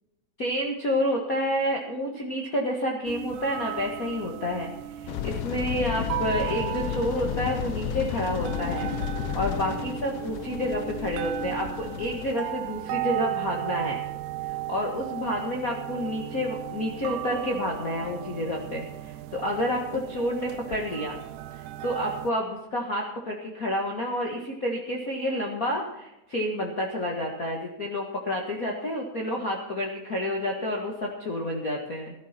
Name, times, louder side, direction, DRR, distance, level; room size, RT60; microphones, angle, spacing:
voice 1, 0.4-8.9 9.3-14.0 14.7-21.2 21.5-32.1, left 1 dB, 35° left, -1 dB, 1.6 m, -29 dB
sound 1, 3.1-22.3, right 14 dB, 85° right, 2.2 m, -36 dB
sound 2, 5.1-12.3, left 10 dB, 80° left, 1.5 m, -33 dB
15.0 x 13.5 x 4.4 m, 0.91 s
omnidirectional pair, 3.5 m